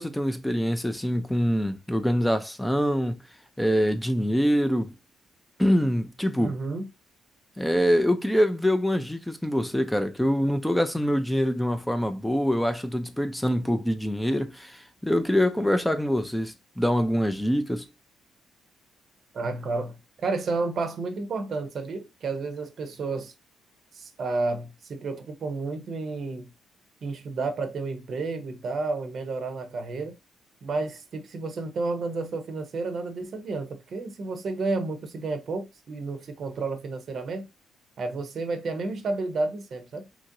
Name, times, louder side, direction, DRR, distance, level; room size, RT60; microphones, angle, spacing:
voice 1, 0.0-3.2 3.6-4.9 5.6-6.6 7.6-17.9, equal, 5° left, 0.4 m, -25 dB
voice 2, 6.4-6.9 19.3-20.0 20.2-23.3 23.9-26.5 27.0-30.1 30.6-37.5 38.0-40.1, right 3 dB, 55° right, 0.6 m, -31 dB
2.9 x 2.5 x 2.6 m
cardioid pair, 90°, 0 cm